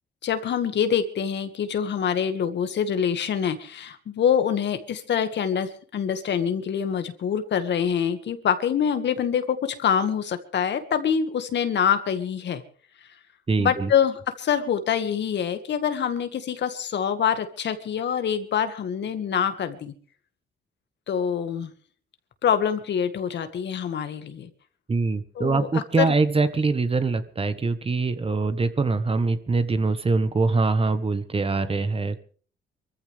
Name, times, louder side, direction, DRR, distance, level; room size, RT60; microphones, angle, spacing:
voice 1, 0.2-12.6 13.6-19.9 21.1-21.7 22.4-24.5 25.4-26.1, left 8 dB, 65° left, 9 dB, 1.9 m, -25 dB
voice 2, 13.5-13.9 24.9-32.2, right 3 dB, 30° right, 11 dB, 1.4 m, -23 dB
24.0 x 14.5 x 3.5 m, 0.43 s
cardioid pair, 90°, 20 cm